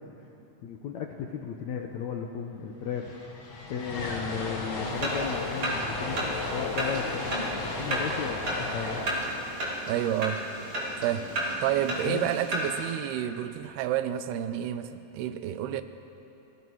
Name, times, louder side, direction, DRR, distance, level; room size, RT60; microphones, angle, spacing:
voice 1, 0.6-3.2 3.7-9.1 12.1-12.3 15.7-15.8, left 7 dB, 75° left, 2 dB, 1.7 m, -35 dB
sound 1, 2.4-2.5 2.7-10.9, left 2 dB, 40° left, 2.4 m, -35 dB
sound 2, 4.9-12.9, right 1 dB, 35° right, 3.5 m, -33 dB
voice 2, 9.9-10.4 11.0-11.3 11.6-15.8, right 11 dB, 90° right, 11 dB, 2.8 m, -29 dB
29.5 x 19.5 x 4.8 m, 2.8 s
omnidirectional pair, 4.5 m